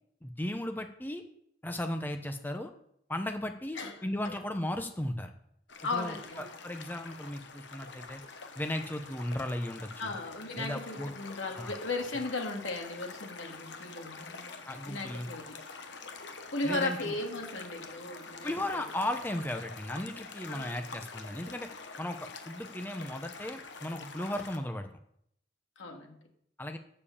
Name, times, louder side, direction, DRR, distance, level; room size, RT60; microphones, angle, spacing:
voice 1, 0.2-1.2 1.6-2.7 3.1-5.3 5.8-8.2 8.6-10.2 10.6-11.1 11.5-11.7 14.7-15.3 16.6-17.1 18.4-21.7 22.0-24.9 26.6-26.8, left 1 dB, 10° left, 6 dB, 0.8 m, -36 dB
sound 1, 5.7-24.6, left 4 dB, 70° left, 1.0 m, -46 dB
voice 2, 5.8-6.4 10.0-14.6 14.9-15.6 16.5-18.8 20.5-20.8 25.8-26.2, left 2 dB, 90° left, 2 dB, 1.8 m, -36 dB
7.6 x 6.7 x 7.2 m, 0.72 s
head